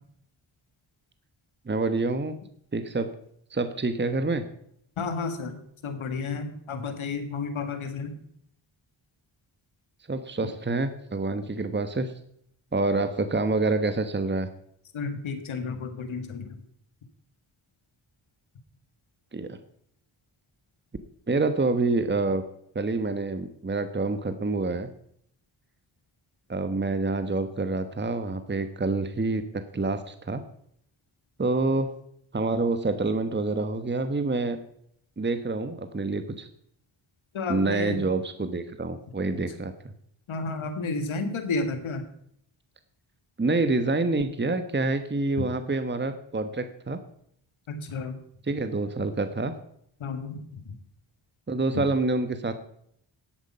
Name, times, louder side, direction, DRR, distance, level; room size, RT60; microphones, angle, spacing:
voice 1, 1.7-2.4 2.7-3.1 3.5-4.4 10.1-12.1 12.7-14.5 19.3-19.6 21.3-22.4 22.7-24.9 26.5-30.4 31.4-31.9 32.3-34.6 35.2-36.5 37.5-39.7 43.4-47.0 48.4-49.5 51.5-52.5, right 3 dB, 20° right, 10 dB, 1.2 m, -27 dB
voice 2, 5.0-8.1 14.9-16.6 37.3-38.1 39.3-39.4 40.3-42.0 47.7-48.2 50.0-50.8, left 4 dB, 80° left, 8 dB, 1.8 m, -32 dB
12.0 x 8.1 x 5.6 m, 0.69 s
cardioid pair, 45°, 48 cm